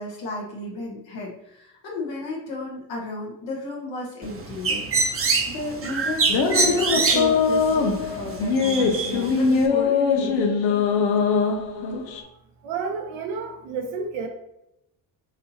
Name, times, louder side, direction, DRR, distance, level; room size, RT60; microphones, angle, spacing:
voice 1, 0.0-10.5, left 1 dB, 70° left, -4 dB, 1.4 m, -34 dB
Bird, 4.2-9.7, right 4 dB, 30° right, 0.8 m, -26 dB
sound 1, 6.3-12.2, left 5 dB, 90° left, 0.8 m, -22 dB
voice 2, 12.6-14.3, right 5 dB, 75° right, 3 dB, 1.1 m, -30 dB
5.9 x 2.8 x 2.9 m, 0.82 s
supercardioid pair, 80°, 46 cm